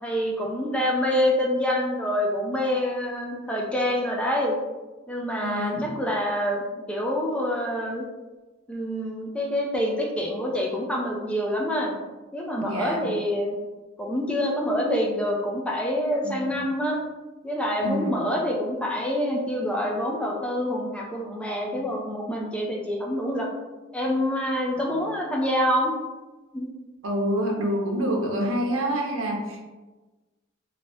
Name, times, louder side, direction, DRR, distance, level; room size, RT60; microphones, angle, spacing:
voice 1, 0.0-4.5 5.1-6.6 6.9-8.1 8.7-12.0 12.3-13.6 14.0-17.0 17.4-23.5 23.9-25.9 26.5-26.7, equal, 5° left, -2 dB, 0.3 m, -26 dB
voice 2, 5.4-5.9 12.6-13.1 16.5-16.6 17.8-18.2 27.0-29.6, equal, 80° right, 0 dB, 0.7 m, -27 dB
3.1 x 2.7 x 2.9 m, 1.2 s
head